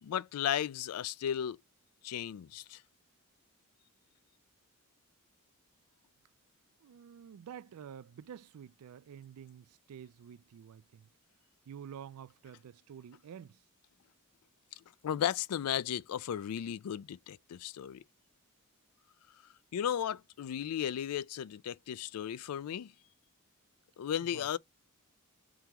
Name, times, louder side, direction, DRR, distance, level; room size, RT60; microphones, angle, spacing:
voice 1, 0.0-1.6 2.0-2.8 15.0-18.0 19.7-22.9 24.0-24.6, left 9 dB, 75° left, 0.3 m, -35 dB
voice 2, 6.8-11.1 11.7-13.6 24.2-24.5, right 8 dB, 75° right, 0.3 m, -49 dB
3.7 x 2.9 x 4.5 m
head